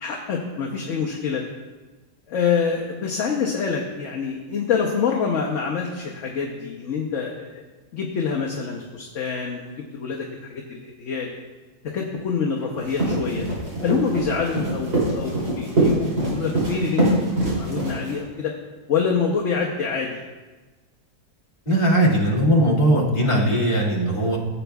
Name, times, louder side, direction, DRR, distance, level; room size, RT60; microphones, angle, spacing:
voice 1, 0.0-1.4 2.3-7.6 7.9-11.3 11.9-13.5 13.8-18.5 18.9-20.2, left 6 dB, 55° left, -1 dB, 1.1 m, -26 dB
sound 1, 12.8-18.2, right 1 dB, 70° right, 3.5 m, -23 dB
voice 2, 21.7-24.4, right 1 dB, 25° left, -7 dB, 2.1 m, -19 dB
15.0 x 8.0 x 2.3 m, 1.2 s
omnidirectional pair, 1.8 m